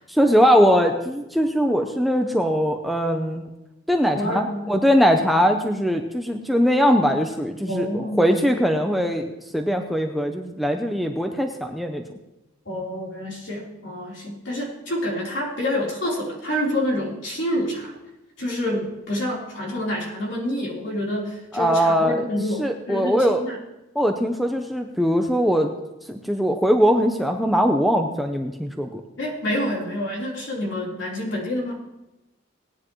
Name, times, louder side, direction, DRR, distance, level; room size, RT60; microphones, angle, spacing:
voice 1, 0.1-3.4 3.9-12.0 21.5-22.2 22.6-23.4 24.0-25.7 26.1-29.0, equal, ahead, 4 dB, 0.6 m, -21 dB
voice 2, 4.2-4.7 7.7-8.5 9.7-9.8 12.7-18.0 18.4-23.6 29.2-31.8, left 1 dB, 60° left, -3 dB, 3.8 m, -28 dB
18.5 x 10.0 x 3.1 m, 0.96 s
head